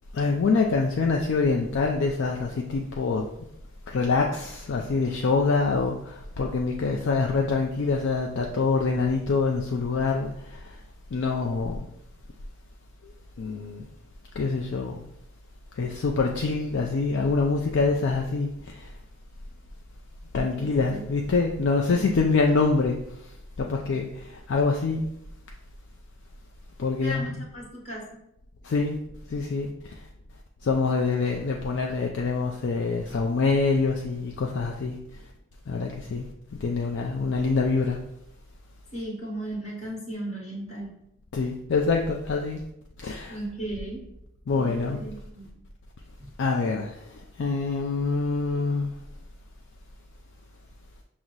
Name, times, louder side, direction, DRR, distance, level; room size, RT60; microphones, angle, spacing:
voice 1, 0.1-3.3 3.9-10.8 11.1-11.9 13.4-13.8 14.4-15.0 15.8-18.9 20.3-23.0 23.6-25.1 26.8-27.3 28.6-29.0 29.3-29.7 30.6-35.0 35.7-36.2 36.6-38.0 41.3-42.6 43.0-43.4 44.5-45.0 46.4-46.9 47.4-49.0, left 4 dB, 55° left, 1 dB, 0.3 m, -25 dB
voice 2, 20.3-21.1 21.9-22.1 27.0-28.2 38.9-40.9 43.3-44.0 44.5-45.5 46.2-46.3, right 1 dB, 30° left, -4 dB, 1.3 m, -36 dB
6.0 x 2.0 x 3.9 m, 0.78 s
head